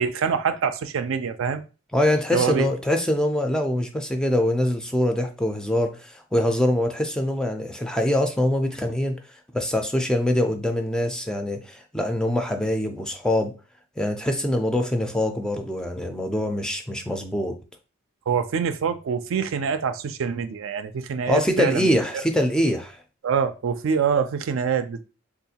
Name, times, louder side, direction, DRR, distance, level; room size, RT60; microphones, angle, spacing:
voice 1, 0.0-1.6 2.3-2.7 18.3-21.9 23.2-25.0, right 6 dB, 70° right, 0.4 m, -25 dB
voice 2, 1.9-9.2 9.5-13.5 14.0-17.6 21.3-23.0, left 1 dB, 5° left, 0.4 m, -24 dB
3.8 x 2.4 x 2.8 m
head